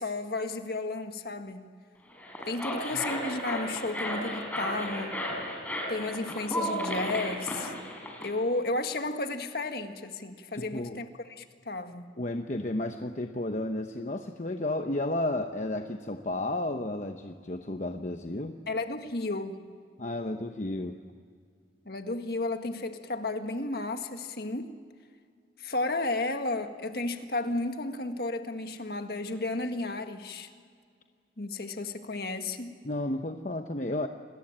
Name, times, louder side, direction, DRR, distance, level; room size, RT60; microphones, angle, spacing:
voice 1, 0.0-1.7 2.5-5.2 5.9-7.7 8.2-12.0 18.7-19.6 21.9-24.7 25.6-30.5 31.4-32.8, left 2 dB, 60° left, 6 dB, 1.8 m, -33 dB
sound 1, 2.1-8.3, equal, 10° left, 4.7 m, -34 dB
voice 2, 2.7-3.0 10.5-11.0 12.2-18.6 20.0-21.1 32.8-34.1, left 1 dB, 45° left, 5 dB, 1.0 m, -32 dB
28.0 x 21.5 x 8.9 m, 2.1 s
head